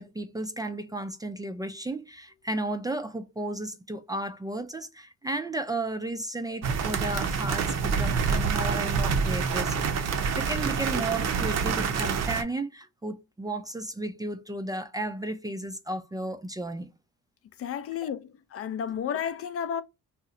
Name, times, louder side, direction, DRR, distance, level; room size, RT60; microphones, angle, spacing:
voice 1, 0.0-16.9 18.0-18.1, right 2 dB, 15° right, 0.4 m, -34 dB
sound 1, 6.6-12.4, right 5 dB, 60° right, 0.6 m, -27 dB
voice 2, 17.6-19.8, left 8 dB, 50° left, 0.4 m, -32 dB
2.8 x 2.1 x 3.6 m
cardioid pair, 90°, 30 cm